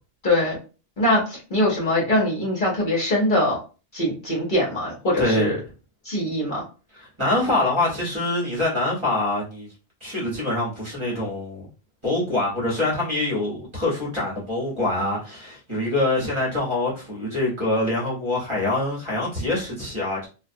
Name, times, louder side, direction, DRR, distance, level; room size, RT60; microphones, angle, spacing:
voice 1, 0.2-0.6 1.0-3.6 3.9-5.6 6.0-6.6, left 1 dB, 50° left, 0.8 m, -22 dB
voice 2, 5.2-5.5 6.9-9.7 10.0-11.7 12.0-20.3, left 2 dB, 25° right, 0.9 m, -25 dB
2.3 x 2.2 x 2.5 m
omnidirectional pair, 1.2 m